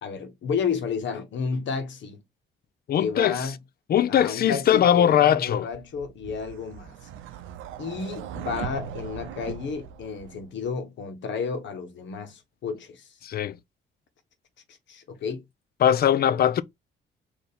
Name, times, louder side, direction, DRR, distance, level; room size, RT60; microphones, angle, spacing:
voice 1, 0.0-2.2 3.0-3.5 4.1-6.9 7.8-13.1 14.9-15.4 16.3-16.4, left 5 dB, 65° left, 1.3 m, -31 dB
voice 2, 2.9-3.5 3.9-5.7 13.2-13.6 15.8-16.6, left 10 dB, 50° left, 0.5 m, -20 dB
sound 1, 5.7-10.7, right 9 dB, 85° right, 0.5 m, -39 dB
4.4 x 2.8 x 3.4 m
cardioid pair, 90°, 20 cm